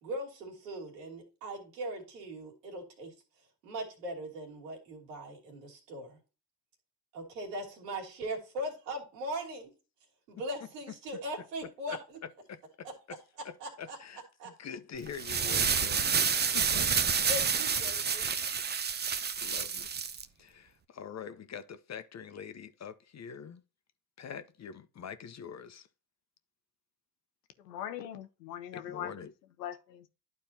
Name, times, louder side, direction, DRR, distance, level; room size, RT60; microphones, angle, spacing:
voice 1, 0.0-3.1 3.6-6.2 7.1-9.7 10.3-12.0 13.6-14.0 14.4-14.5 17.3-18.3, equal, 85° right, 2.7 m, -39 dB
voice 2, 12.5-13.2 13.4-17.2 19.1-19.9 20.4-23.6 24.2-25.9 28.7-29.3, left 7 dB, 35° left, 0.9 m, -45 dB
sound 1, 15.1-20.2, right 6 dB, 20° right, 0.6 m, -29 dB
voice 3, 27.6-29.3 29.6-30.1, left 10 dB, 90° left, 0.8 m, -41 dB
11.5 x 4.3 x 2.8 m
hypercardioid pair, 65°, 47 cm